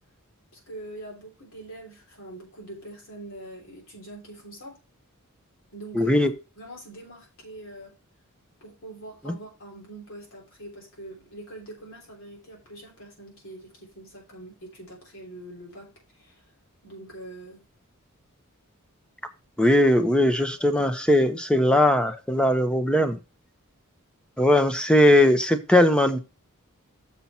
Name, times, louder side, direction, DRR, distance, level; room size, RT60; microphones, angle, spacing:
voice 1, 0.5-4.8 5.7-6.2 6.6-7.9 8.6-16.5 16.8-17.6, right 1 dB, 65° left, 3.4 m, -43 dB
voice 2, 5.9-6.3 9.2-9.3 19.6-23.2 24.4-26.2, left 1 dB, 5° left, 0.9 m, -19 dB
7.1 x 5.9 x 4.3 m
head